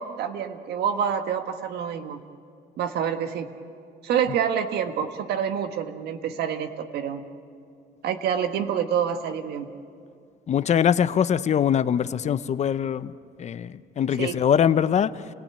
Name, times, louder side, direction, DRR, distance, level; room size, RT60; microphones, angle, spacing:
voice 1, 0.0-2.2 2.8-3.5 4.0-7.2 8.0-9.7 14.2-14.4, right 8 dB, 75° right, 7 dB, 1.5 m, -27 dB
voice 2, 10.5-13.1 13.4-15.2, left 8 dB, 40° left, 14 dB, 0.7 m, -22 dB
29.0 x 17.5 x 8.8 m, 2.4 s
cardioid pair, 110°, 17 cm